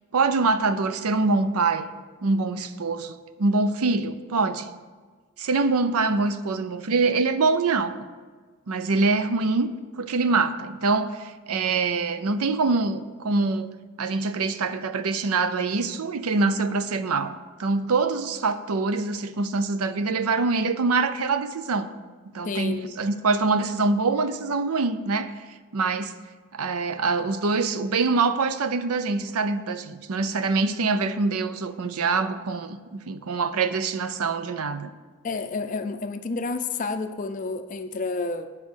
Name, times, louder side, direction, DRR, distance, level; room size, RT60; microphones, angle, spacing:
voice 1, 0.1-1.9 2.2-4.7 5.4-8.0 8.7-9.7 10.0-13.7 14.0-21.9 22.3-25.4 25.7-26.2 26.5-34.9, right 3 dB, 85° right, 0.6 m, -24 dB
voice 2, 22.4-22.9 35.2-38.5, left 3 dB, 35° left, 0.4 m, -30 dB
7.5 x 7.3 x 6.3 m
head